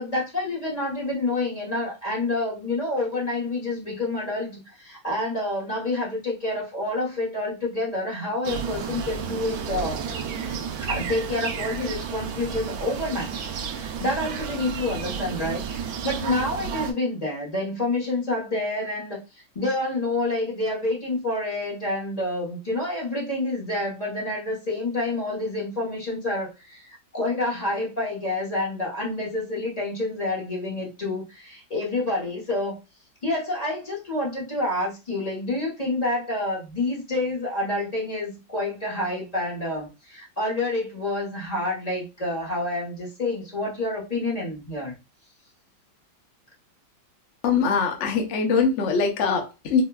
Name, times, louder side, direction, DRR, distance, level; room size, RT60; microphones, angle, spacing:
voice 1, 0.0-10.0 10.8-32.8 33.2-45.0, left 2 dB, 30° left, -5 dB, 0.8 m, -28 dB
sound 1, 8.4-16.9, right 7 dB, 75° right, 0.8 m, -32 dB
voice 2, 47.4-49.8, left 5 dB, 60° left, 3 dB, 0.7 m, -22 dB
4.3 x 2.2 x 2.3 m, 0.28 s
omnidirectional pair, 2.1 m